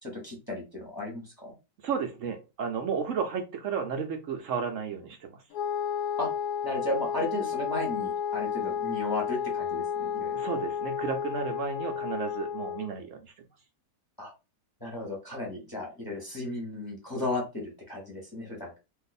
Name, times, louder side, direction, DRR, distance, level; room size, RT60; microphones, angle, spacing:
voice 1, 0.0-1.5 6.2-6.3 6.6-10.4 14.2-14.3 14.8-18.8, left 2 dB, 15° left, -2 dB, 0.9 m, -35 dB
voice 2, 1.8-5.4 10.3-13.3, right 6 dB, 65° right, 5 dB, 0.8 m, -33 dB
Wind instrument woodwind instrument, 5.5-13.0, left 8 dB, 70° left, 0.9 m, -32 dB
2.7 x 2.4 x 4.0 m, 0.28 s
omnidirectional pair, 1.7 m